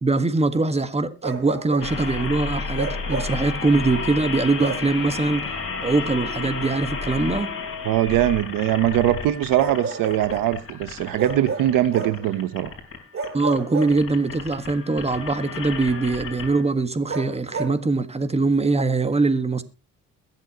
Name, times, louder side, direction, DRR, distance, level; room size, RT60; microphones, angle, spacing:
voice 1, 0.0-7.5 13.3-19.6, right 3 dB, 20° right, 1.6 m, -22 dB
Bark, 1.2-2.0 2.7-3.4 4.6-5.0 6.6-6.8 9.6-10.5 11.2-12.3 13.1-14.4 17.1-17.8, right 4 dB, 40° right, 2.9 m, -31 dB
sound 1, 1.8-16.6, left 4 dB, 40° left, 4.6 m, -32 dB
voice 2, 7.8-12.7, right 13 dB, 85° right, 1.1 m, -22 dB
22.0 x 7.8 x 3.0 m
cardioid pair, 85°, 32 cm